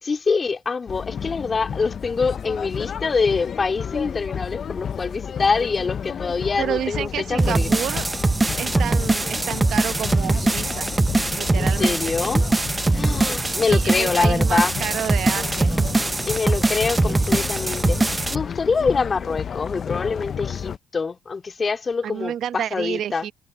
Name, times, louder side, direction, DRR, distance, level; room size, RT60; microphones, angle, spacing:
voice 1, 0.0-7.7 11.5-12.4 12.9-14.7 16.3-23.3, left 4 dB, 35° left, 3.7 m, -25 dB
sound 1, 0.9-20.8, left 7 dB, 55° left, 0.7 m, -32 dB
voice 2, 6.6-8.1 8.6-10.9 11.4-12.1 13.7-15.7 22.0-23.3, right 10 dB, 70° right, 1.0 m, -29 dB
sound 2, 7.4-18.4, right 2 dB, 20° right, 0.8 m, -22 dB
cardioid pair, 90°, 0 cm